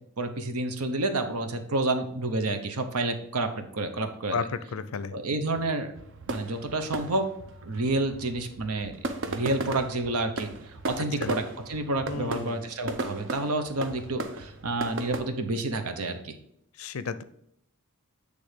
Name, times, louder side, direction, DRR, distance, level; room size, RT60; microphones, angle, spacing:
voice 1, 0.2-4.5 5.1-5.9 6.3-7.3 7.6-9.0 9.3-10.5 10.9-16.4, right 2 dB, 85° right, 7 dB, 0.9 m, -29 dB
voice 2, 4.3-5.1 11.2-11.3 12.1-12.6 16.8-17.2, left 5 dB, 70° left, 14 dB, 0.5 m, -32 dB
sound 1, 6.0-15.2, right 2 dB, 60° right, 0.7 m, -37 dB
8.2 x 3.4 x 5.1 m, 0.76 s
head